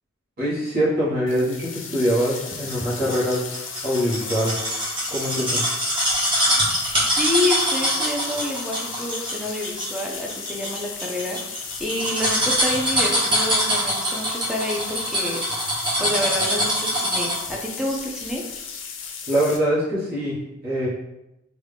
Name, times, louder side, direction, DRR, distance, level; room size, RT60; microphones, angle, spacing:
voice 1, 0.4-3.5 3.8-4.5 5.1-5.6 19.3-20.9, equal, 45° right, -9 dB, 1.2 m, -23 dB
sound 1, 1.3-19.6, left 6 dB, 65° left, 0.5 m, -36 dB
sound 2, 2.3-17.5 17.9-18.0, equal, 25° right, 0.9 m, -24 dB
voice 2, 7.0-11.4 11.8-15.4 16.0-18.4, left 1 dB, 5° right, -1 dB, 0.5 m, -28 dB
3.5 x 2.3 x 3.4 m, 0.91 s
head